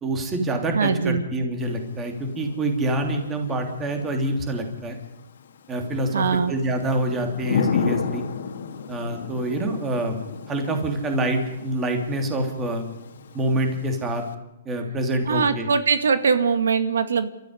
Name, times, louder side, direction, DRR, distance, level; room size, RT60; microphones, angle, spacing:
voice 1, 0.0-5.0 5.7-8.2 8.9-10.2 10.5-12.8 13.3-14.2 14.6-15.7, right 1 dB, 15° right, 4 dB, 3.2 m, -26 dB
voice 2, 0.7-1.2 6.1-6.5 15.3-17.3, right 5 dB, 90° right, 9 dB, 2.0 m, -21 dB
Thunder / Rain, 1.6-14.3, left 6 dB, 75° left, 2.5 m, -34 dB
29.5 x 14.0 x 9.9 m, 0.96 s
hypercardioid pair, 160°, 0 cm